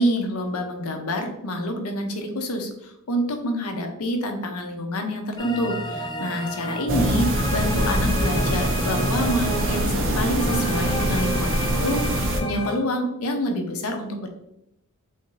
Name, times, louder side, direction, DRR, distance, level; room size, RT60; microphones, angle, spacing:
voice 1, 0.0-14.3, equal, 80° left, 4 dB, 0.7 m, -27 dB
sound 1, 5.4-12.8, left 1 dB, 20° left, 0.4 m, -32 dB
sound 2, 6.9-12.4, right 1 dB, 60° right, 0.7 m, -23 dB
3.5 x 2.6 x 3.9 m, 0.82 s
head